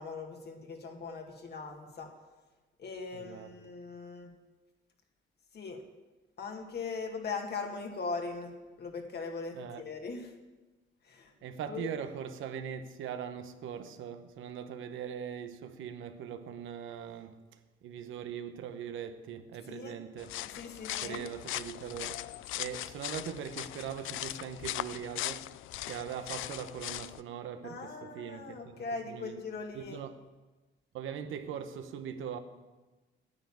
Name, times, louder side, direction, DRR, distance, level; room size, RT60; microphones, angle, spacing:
voice 1, 0.0-2.1 2.8-4.3 5.5-5.8 6.4-8.5 8.8-10.3 11.1-11.3 11.7-11.9 19.7-20.0 20.5-21.3 27.6-30.0, left 4 dB, 55° left, 2.2 m, -40 dB
voice 2, 3.1-3.5 9.5-9.8 11.4-17.4 17.8-20.4 21.0-22.3 22.6-25.5 25.8-29.4 29.7-30.2 30.9-32.4, right 8 dB, 85° right, 1.1 m, -41 dB
sound 1, 20.2-27.2, left 15 dB, 80° left, 0.4 m, -39 dB
9.8 x 9.3 x 8.7 m
cardioid pair, 90°, 20 cm